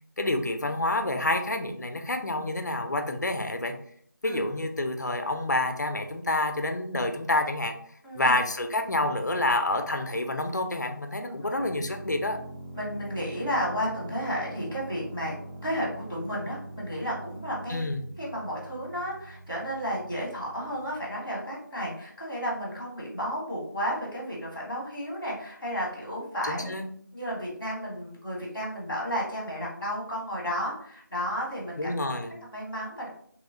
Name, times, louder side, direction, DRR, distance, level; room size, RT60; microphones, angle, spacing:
voice 1, 0.2-3.7 4.2-7.7 8.1-12.4 17.7-18.0 26.5-26.8 31.8-32.3, left 2 dB, 60° left, 5 dB, 0.5 m, -28 dB
voice 2, 8.0-8.3 11.2-11.3 12.7-15.3 15.6-17.8 18.2-26.7 27.1-31.9 32.3-33.1, equal, 5° right, -14 dB, 0.6 m, -32 dB
sound 1, 11.6-21.2, right 1 dB, 85° right, 0.7 m, -43 dB
3.0 x 2.1 x 3.6 m, 0.62 s
figure-of-eight pair, 175°, 11 cm